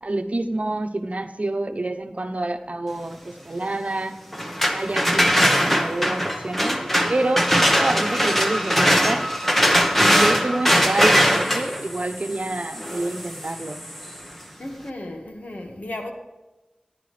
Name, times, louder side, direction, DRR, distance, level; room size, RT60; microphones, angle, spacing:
voice 1, 0.0-4.2 4.7-9.3 9.8-13.9, right 2 dB, 60° right, 1.0 m, -27 dB
sound 1, 4.3-14.2, equal, 5° left, 1.3 m, -21 dB
voice 2, 14.6-16.1, left 1 dB, 90° left, 1.7 m, -34 dB
15.0 x 10.5 x 3.3 m
wide cardioid pair, 50°, 3 cm